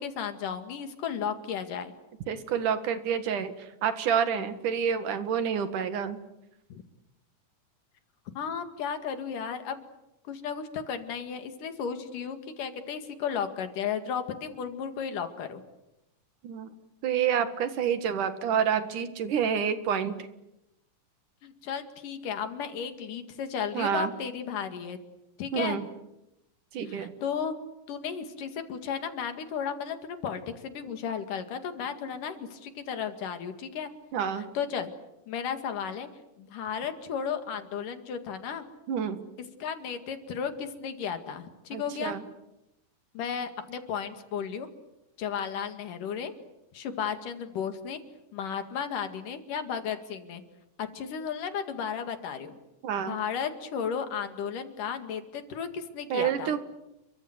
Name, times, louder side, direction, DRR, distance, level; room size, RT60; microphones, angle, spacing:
voice 1, 0.0-1.9 6.7-6.8 8.4-9.9 10.3-15.6 21.4-25.0 25.4-25.8 26.9-27.5 27.9-33.9 34.4-34.9 35.3-36.1 36.4-38.6 39.6-42.1 43.1-44.7 45.2-46.3 46.7-48.0 48.3-50.4 50.8-52.6 53.1-56.5, left 7 dB, 80° left, 8 dB, 3.7 m, -34 dB
voice 2, 2.3-6.2 16.4-16.7 17.0-20.2 23.7-24.1 25.5-25.8 26.7-27.1 34.1-34.4 38.9-39.2 41.7-42.2 52.8-53.2 56.1-56.6, right 8 dB, 75° right, 10 dB, 3.3 m, -28 dB
30.0 x 23.5 x 8.0 m, 0.89 s
omnidirectional pair, 3.7 m